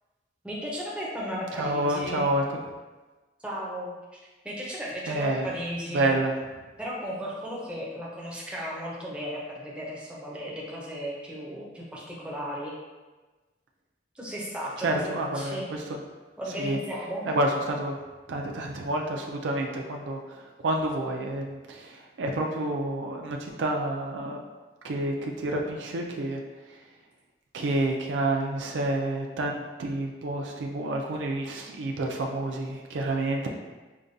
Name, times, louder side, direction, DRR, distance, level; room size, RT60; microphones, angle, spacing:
voice 1, 0.4-2.2 3.4-4.2 4.4-6.1 6.8-12.7 14.1-15.7 16.4-17.2, equal, 5° right, -5 dB, 0.6 m, -35 dB
voice 2, 1.5-2.6 5.1-5.5 5.9-6.3 14.8-16.0 16.6-16.8 17.3-18.0 18.3-24.4 24.8-26.4 26.7-26.8 27.5-33.5, right 1 dB, 90° right, 1 dB, 0.4 m, -29 dB
4.9 x 2.2 x 2.6 m, 1.2 s
head